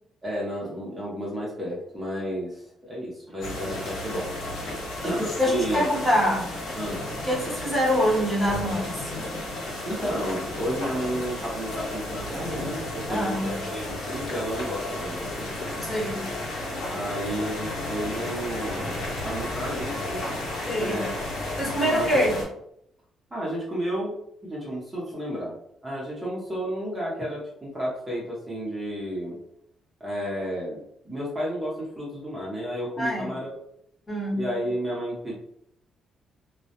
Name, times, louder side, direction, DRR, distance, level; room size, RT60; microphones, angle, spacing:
voice 1, 0.2-4.7 5.0-5.8 6.8-7.0 9.8-15.5 16.9-20.5 20.7-21.2 21.8-22.2 23.3-24.1 24.4-25.5 25.8-29.4 30.0-33.5 34.3-35.3, equal, 15° right, -6 dB, 0.7 m, -32 dB
sound 1, 3.4-22.4, left 1 dB, 85° left, 1.0 m, -33 dB
voice 2, 5.4-6.5 7.2-9.1 13.1-13.5 15.8-16.3 20.6-21.0 21.6-22.4 33.0-33.3 34.1-34.4, equal, 15° left, -5 dB, 1.0 m, -25 dB
2.2 x 2.0 x 2.8 m, 0.73 s
cardioid pair, 90°, 0 cm